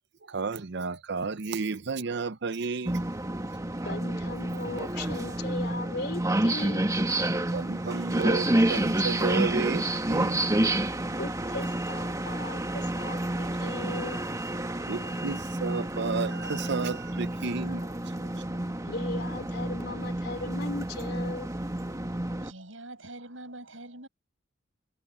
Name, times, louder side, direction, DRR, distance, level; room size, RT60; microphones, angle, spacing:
voice 1, 0.3-3.0 7.5-10.4 14.9-17.8 18.2-18.3, right 4 dB, 60° right, 0.7 m, -32 dB
sound 1, 2.9-22.5, right 1 dB, 20° right, 1.8 m, -29 dB
voice 2, 3.8-6.9 11.1-14.2 18.9-21.5, left 2 dB, 55° left, 3.1 m, -38 dB
voice 3, 22.3-24.1, right 2 dB, 85° right, 7.2 m, -44 dB
head